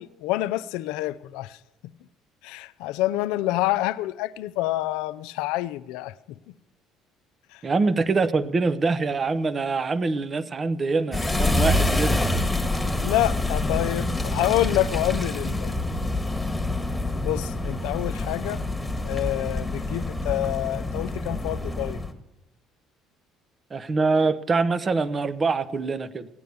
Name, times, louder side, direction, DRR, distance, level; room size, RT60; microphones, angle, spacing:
voice 1, 0.0-1.6 2.4-6.5 7.5-7.6 13.0-15.7 17.2-18.6 19.0-22.0, left 15 dB, 80° left, 0.5 m, -27 dB
voice 2, 7.6-12.4 23.7-26.3, right 4 dB, 35° right, 0.9 m, -24 dB
sound 1, 11.1-22.1, left 2 dB, 5° left, 1.6 m, -26 dB
16.5 x 9.3 x 6.9 m
supercardioid pair, 75°, 0 cm